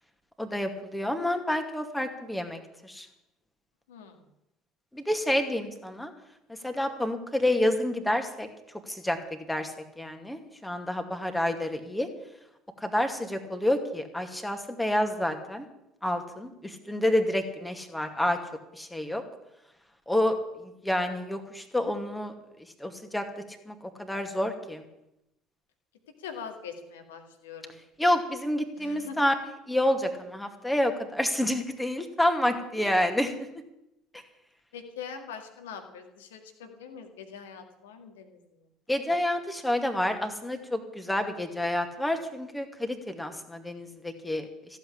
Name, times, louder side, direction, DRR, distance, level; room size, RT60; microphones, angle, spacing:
voice 1, 0.4-3.1 4.9-6.1 6.6-8.5 8.9-9.2 9.5-12.1 12.8-15.7 16.0-18.4 18.7-19.2 20.1-22.3 22.8-23.2 23.7-24.8 28.0-29.3 29.7-33.3 38.9-44.5, left 1 dB, 5° left, 6 dB, 2.4 m, -28 dB
voice 2, 3.9-4.2 16.7-16.8 26.2-27.7 28.8-29.2 32.7-32.9 34.7-38.6, left 7 dB, 70° left, 6 dB, 2.0 m, -43 dB
15.0 x 8.3 x 9.9 m, 0.87 s
figure-of-eight pair, 60°, 0 cm